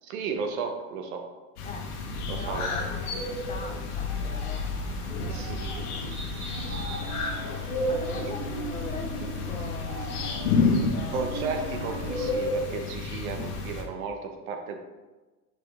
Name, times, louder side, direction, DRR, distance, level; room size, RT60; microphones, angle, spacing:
voice 1, 0.1-1.2 2.3-2.9 5.3-6.1 11.1-14.8, right 5 dB, 65° right, 4 dB, 1.2 m, -34 dB
sound 1, 1.6-13.8, left 3 dB, 80° left, 1.4 m, -30 dB
voice 2, 2.2-4.7 5.2-11.2, left 4 dB, 15° left, 1 dB, 0.4 m, -42 dB
sound 2, 4.1-12.4, right 2 dB, 25° right, 1.6 m, -39 dB
5.7 x 5.7 x 3.5 m, 1.2 s
hypercardioid pair, 115°, 45 cm